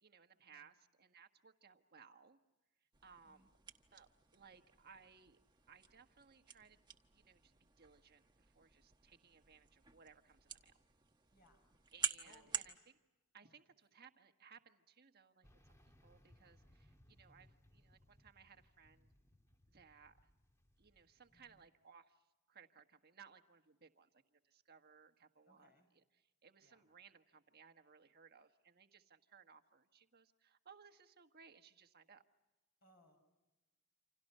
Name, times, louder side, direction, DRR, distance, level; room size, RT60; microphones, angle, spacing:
voice 1, 0.0-2.4 3.0-3.5 3.9-5.4 5.7-6.8 7.1-8.2 8.5-10.7 11.9-13.0 13.3-19.1 19.7-20.2 20.8-22.1 22.5-32.2, right 6 dB, 45° right, 7 dB, 1.4 m, -63 dB
sound 1, 2.9-12.7, right 6 dB, 20° right, 1.3 m, -49 dB
voice 2, 11.3-11.7 12.2-12.7 13.4-13.6 21.3-21.6 25.5-25.9 26.6-26.9 32.8-33.2, left 1 dB, 45° left, 4 dB, 6.2 m, -69 dB
sound 2, 15.4-21.7, left 1 dB, 15° left, 1.6 m, -69 dB
29.5 x 27.0 x 5.5 m, 1.1 s
head